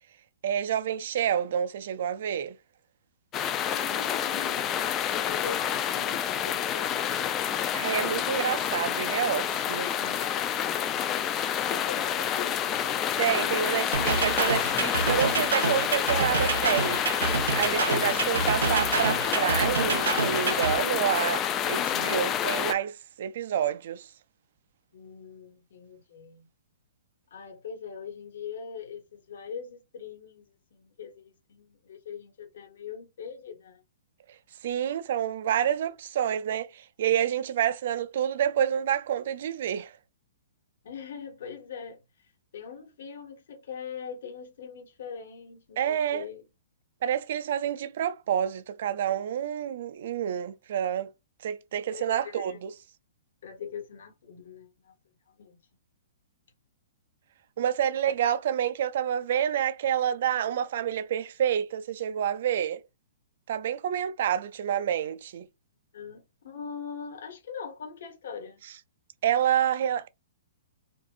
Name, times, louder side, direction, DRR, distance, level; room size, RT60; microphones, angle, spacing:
voice 1, 0.4-2.6 7.7-10.2 13.2-17.0 17.5-24.1 34.6-39.9 45.8-46.3 47.0-51.1 51.4-52.7 57.6-62.8 63.5-65.5 69.2-70.1, right 9 dB, 55° right, 0.5 m, -28 dB
sound 1, 3.3-22.7, left 9 dB, 20° left, 0.4 m, -28 dB
voice 2, 3.6-7.2 11.7-12.9 24.9-26.5 27.3-33.8 40.8-42.0 42.5-46.4 51.9-52.6 53.4-54.9 55.4-55.6 58.2-58.3 65.9-68.6, left 7 dB, 65° left, 1.7 m, -42 dB
sound 2, 13.9-20.8, right 4 dB, 90° right, 1.1 m, -28 dB
4.4 x 2.6 x 2.5 m
hypercardioid pair, 155°, 0 cm